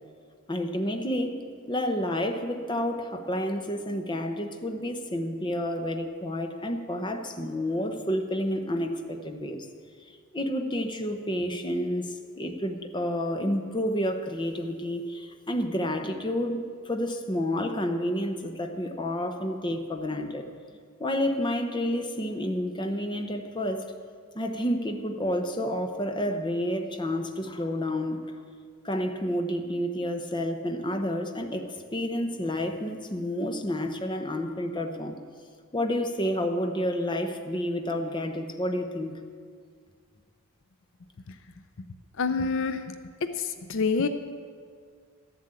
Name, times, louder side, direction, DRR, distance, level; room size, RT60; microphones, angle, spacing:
voice 1, 0.5-9.7 10.0-20.5 21.0-23.9 24.3-28.4 28.8-35.2 35.7-39.2, equal, 20° left, 6 dB, 0.8 m, -30 dB
voice 2, 42.2-43.0 43.4-44.1, left 4 dB, 60° left, 10 dB, 0.5 m, -27 dB
13.0 x 7.6 x 8.9 m, 2.1 s
head